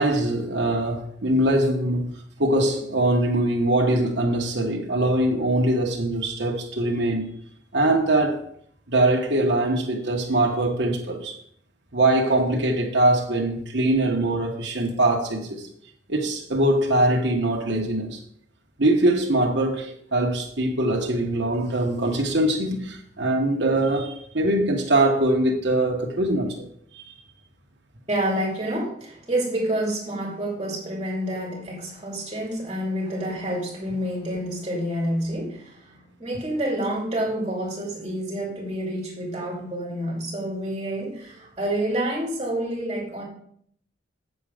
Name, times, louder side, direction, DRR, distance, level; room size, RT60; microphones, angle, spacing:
voice 1, 0.0-2.1 2.4-7.3 7.7-8.4 8.9-11.4 11.9-15.7 16.1-18.2 18.8-26.7 26.9-27.0, right 1 dB, 90° right, 1.4 m, -22 dB
voice 2, 28.1-43.2, right 1 dB, 30° right, 2.7 m, -28 dB
8.8 x 6.9 x 5.1 m
head